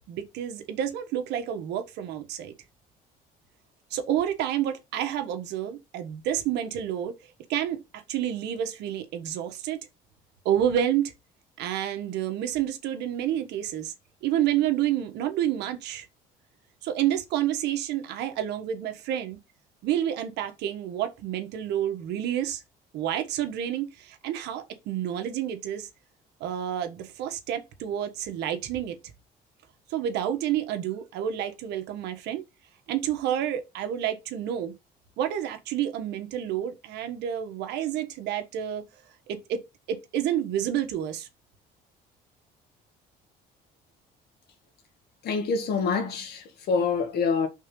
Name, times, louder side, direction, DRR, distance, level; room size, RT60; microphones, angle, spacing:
voice 1, 0.1-2.5 3.9-7.1 7.5-9.8 10.4-11.1 11.6-13.9 14.2-16.1 16.8-19.4 19.8-22.6 22.9-25.9 26.4-29.0 29.9-32.4 32.9-34.7 35.2-38.9 39.3-39.6 39.9-41.3, right 10 dB, 85° right, 1.3 m, -29 dB
voice 2, 45.2-47.5, left 5 dB, 70° left, 1.9 m, -26 dB
5.4 x 3.8 x 5.2 m
cardioid pair, 110°, 17 cm